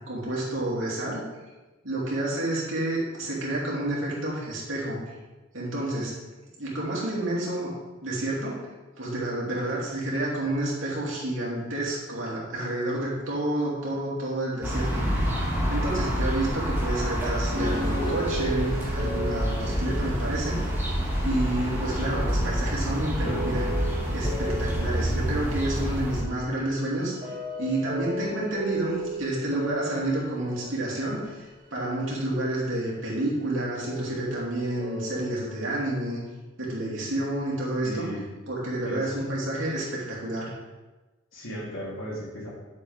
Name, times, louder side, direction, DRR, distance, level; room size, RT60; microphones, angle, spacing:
voice 1, 0.1-1.2 1.8-5.0 5.5-6.1 6.6-7.7 8.0-8.6 9.0-15.3 15.7-20.9 21.2-23.8 24.1-27.1 27.6-36.2 36.6-38.1 38.5-40.5, right 1 dB, 70° right, -5 dB, 3.0 m, -29 dB
sound 1, 14.6-26.2, equal, 10° right, 1.9 m, -28 dB
sound 2, 17.5-22.6 23.0-23.1 23.3-25.9 26.3-26.4 27.1-31.3 33.8-35.5, right 1 dB, 40° right, 2.9 m, -35 dB
voice 2, 37.8-38.3 38.8-39.2 41.3-42.5, equal, 85° left, -5 dB, 3.4 m, -35 dB
10.5 x 7.4 x 3.6 m, 1.2 s
head